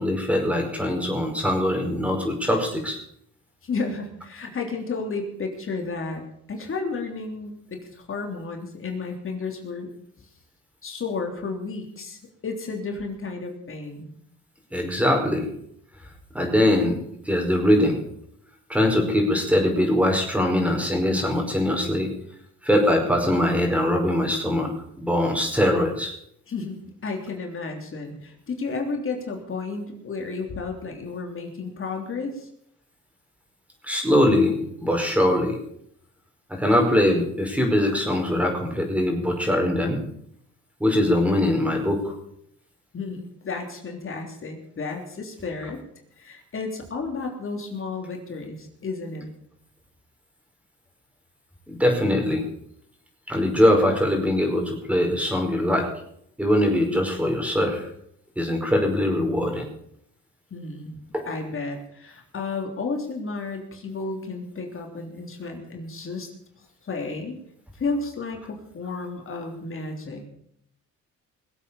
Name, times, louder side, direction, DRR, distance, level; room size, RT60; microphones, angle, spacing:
voice 1, 0.0-3.0 14.7-15.5 16.3-17.0 17.2-18.0 18.7-22.1 22.6-24.7 25.0-26.1 33.8-35.6 36.5-40.0 40.8-42.1 51.7-52.4 53.3-55.9 56.4-57.9 58.4-59.7 61.1-61.3, left 1 dB, 5° right, 2 dB, 5.2 m, -22 dB
voice 2, 3.6-6.2 6.5-9.9 10.8-14.1 26.5-32.5 42.9-45.8 46.2-49.3 60.5-61.0 61.2-66.3 66.8-67.4 67.8-70.2, left 4 dB, 45° left, 3 dB, 3.3 m, -32 dB
21.0 x 8.2 x 7.1 m, 0.70 s
cardioid pair, 90°, 30 cm